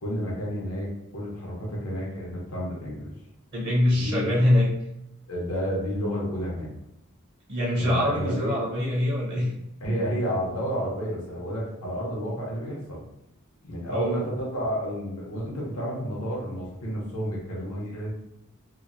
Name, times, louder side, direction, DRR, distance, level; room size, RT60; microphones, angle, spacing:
voice 1, 0.0-3.1 3.9-4.3 5.3-6.7 7.8-8.6 9.8-13.0 13.6-18.1, equal, 80° left, -4 dB, 0.7 m, -31 dB
voice 2, 3.5-4.7 7.5-9.5 9.9-10.0 13.9-14.2, left 1 dB, 50° right, -6 dB, 0.7 m, -24 dB
2.8 x 2.0 x 2.5 m, 0.84 s
head